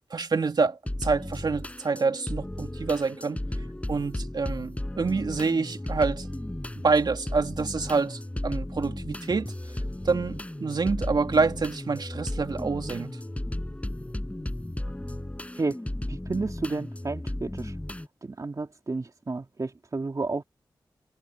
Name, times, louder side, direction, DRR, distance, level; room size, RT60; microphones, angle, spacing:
voice 1, 0.1-3.4 3.9-6.3 6.8-9.5 10.0-13.2, right 4 dB, 60° right, 2.6 m, -27 dB
sound 1, 0.8-18.1, left 1 dB, 15° left, 7.4 m, -34 dB
voice 2, 16.1-17.8 18.2-20.4, right 3 dB, 45° right, 3.0 m, -31 dB
cardioid pair, 45°, 8 cm